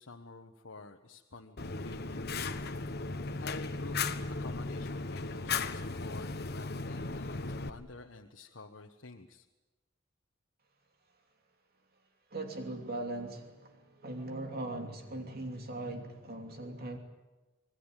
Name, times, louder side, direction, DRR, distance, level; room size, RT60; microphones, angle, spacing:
voice 1, 0.0-2.5 3.4-3.9 4.4-6.3 6.5-9.4, left 3 dB, 85° left, 2 dB, 1.3 m, -49 dB
Fire, 1.6-7.7, left 4 dB, 55° left, 1.3 m, -36 dB
voice 2, 12.3-17.0, right 2 dB, 55° right, 4 dB, 3.0 m, -40 dB
26.5 x 20.5 x 9.1 m, 1.1 s
head